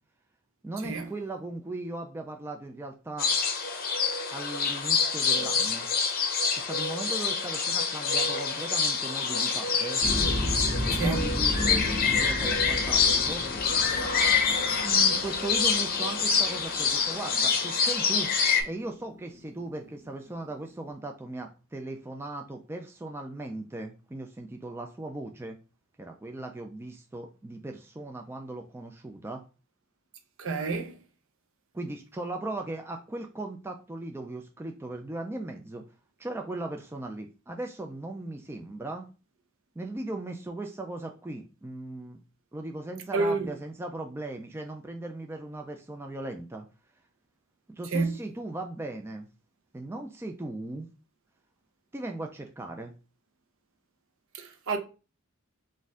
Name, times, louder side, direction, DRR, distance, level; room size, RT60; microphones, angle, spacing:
voice 1, 0.6-3.3 4.3-5.9 6.5-10.0 10.9-13.4 14.8-18.3 18.6-25.6 26.0-29.4 31.7-35.8 36.2-39.1 39.8-42.2 42.5-46.7 47.7-49.3 49.7-50.9 51.9-52.9, right 2 dB, 10° right, 0.3 m, -38 dB
sound 1, 3.2-18.6, left 5 dB, 45° left, 0.7 m, -26 dB
sound 2, 10.0-20.5, left 1 dB, 20° left, 0.9 m, -34 dB
voice 2, 10.9-11.2 30.4-31.0 43.1-43.5 47.9-48.2 54.3-54.8, right 3 dB, 60° right, 0.7 m, -29 dB
4.2 x 2.5 x 3.5 m
head